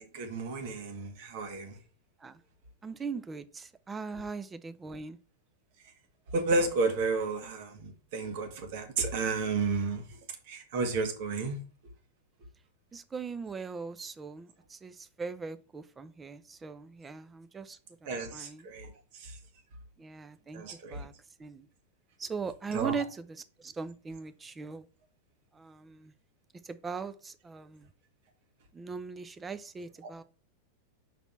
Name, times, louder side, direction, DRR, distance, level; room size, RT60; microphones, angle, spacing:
voice 1, 0.0-1.8 6.3-10.0 10.5-11.6 18.1-19.4 20.5-21.1 22.7-22.9, right 3 dB, 50° right, 1.8 m, -32 dB
voice 2, 2.8-5.2 12.9-18.7 20.0-20.6 20.9-21.1 21.4-21.7 22.2-24.9 25.5-26.1 26.6-27.9 28.7-30.2, right 5 dB, 15° right, 0.7 m, -40 dB
5.9 x 4.2 x 5.5 m
figure-of-eight pair, 90°, 0 cm